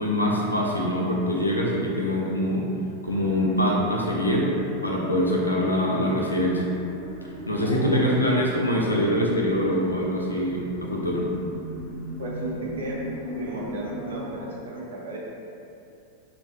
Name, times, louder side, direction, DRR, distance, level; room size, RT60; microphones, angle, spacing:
voice 1, 0.0-2.7 3.0-4.5 4.8-6.7 7.5-11.3, equal, 85° left, -3 dB, 0.3 m, -24 dB
sound 1, 3.0-14.5, equal, 10° right, 0.6 m, -38 dB
voice 2, 7.6-8.0 12.2-13.0 13.3-15.2, right 1 dB, 65° right, -4 dB, 0.5 m, -34 dB
2.3 x 2.0 x 2.7 m, 2.6 s
figure-of-eight pair, 90°, 0 cm